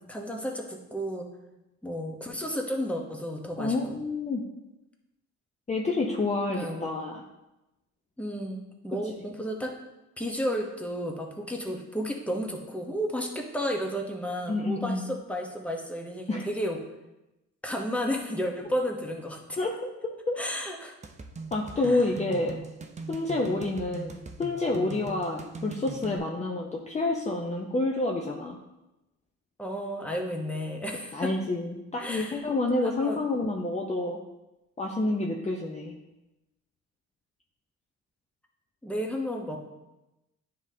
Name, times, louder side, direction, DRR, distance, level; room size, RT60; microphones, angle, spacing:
voice 1, 0.1-1.3 1.8-4.0 6.5-6.9 8.2-9.7 10.2-16.8 17.6-19.6 20.4-20.9 21.8-22.0 29.6-31.3 32.0-32.4 32.8-33.2 38.8-39.6, equal, 5° left, 1 dB, 1.0 m, -32 dB
voice 2, 3.6-4.4 5.7-7.2 14.5-15.1 16.3-16.5 19.6-20.4 21.5-22.6 23.1-28.6 31.1-34.2 34.8-36.0, left 2 dB, 25° left, -1 dB, 0.7 m, -29 dB
sound 1, 21.0-26.2, right 4 dB, 25° right, 0.6 m, -41 dB
9.4 x 3.8 x 2.8 m, 0.96 s
cardioid pair, 90°, 30 cm